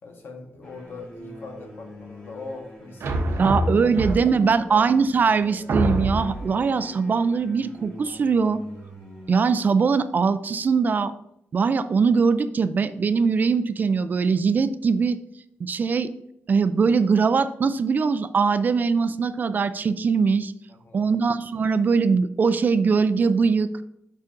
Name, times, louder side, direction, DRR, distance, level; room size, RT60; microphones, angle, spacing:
voice 1, 0.0-3.4 3.8-4.8 20.7-21.1, left 3 dB, 60° left, 3 dB, 1.3 m, -41 dB
sound 1, 0.6-9.4, equal, 20° left, 1.7 m, -43 dB
sound 2, 3.0-4.5 5.2-5.3 5.7-6.5, right 1 dB, 75° right, 0.8 m, -25 dB
voice 2, 3.4-8.6 9.3-11.1 11.5-15.2 15.6-16.1 16.5-20.5 20.9-23.7, right 5 dB, 40° right, 12 dB, 0.3 m, -21 dB
7.2 x 5.7 x 2.5 m, 0.80 s
wide cardioid pair, 150°, 5 cm